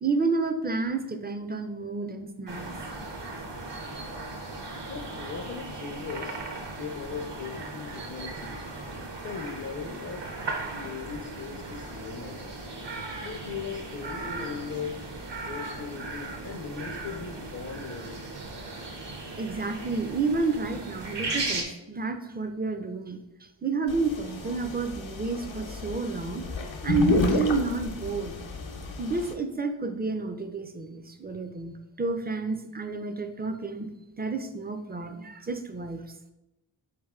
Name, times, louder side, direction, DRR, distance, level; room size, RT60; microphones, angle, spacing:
voice 1, 0.0-2.6 19.4-23.2 23.6-26.4 26.8-28.3 29.0-33.9 34.2-36.1, right 3 dB, 20° right, 7 dB, 0.4 m, -30 dB
sound 1, 2.5-21.6, right 2 dB, 60° right, 0.8 m, -37 dB
voice 2, 4.9-6.4 6.8-8.6 9.2-10.3 10.7-12.6 13.2-15.0 15.4-18.2, left 6 dB, 40° left, 2 dB, 0.5 m, -38 dB
sound 2, 23.9-29.3, left 2 dB, 70° left, 0.7 m, -30 dB
3.8 x 3.3 x 3.5 m, 0.96 s
cardioid pair, 40°, 48 cm